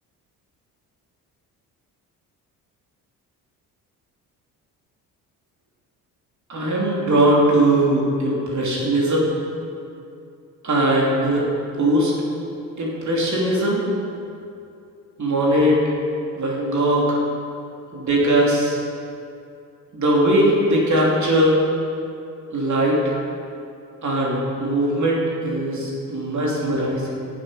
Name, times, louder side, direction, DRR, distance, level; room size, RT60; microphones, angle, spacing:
voice 1, 6.5-9.3 10.6-11.4 11.8-12.1 12.8-13.9 15.2-15.8 16.3-17.2 17.9-18.8 19.9-21.6 22.5-23.1 24.0-27.1, right 1 dB, 40° right, -4 dB, 3.3 m, -20 dB
17.5 x 7.7 x 5.2 m, 2.5 s
figure-of-eight pair, 50°, 46 cm